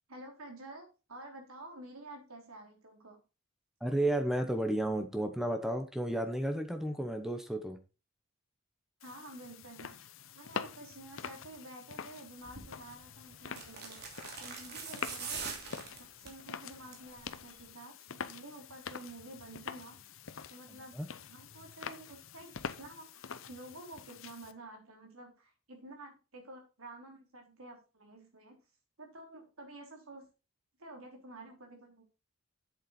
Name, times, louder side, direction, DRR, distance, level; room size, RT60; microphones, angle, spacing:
voice 1, 0.1-3.2 9.0-10.1 10.3-15.7 16.2-20.0 20.5-21.0 21.3-28.6 29.0-30.2 30.8-32.0, right 2 dB, 85° right, 2 dB, 3.4 m, -50 dB
voice 2, 3.8-7.8 20.9-21.1, right 1 dB, ahead, 7 dB, 1.0 m, -32 dB
sound 1, 9.0-24.5, left 6 dB, 65° left, 0.7 m, -45 dB
sound 2, 12.4-12.7 13.5-16.4 16.8-17.1 17.4-17.5, right 5 dB, 50° right, 2.8 m, -42 dB
8.1 x 7.5 x 4.3 m, 0.30 s
head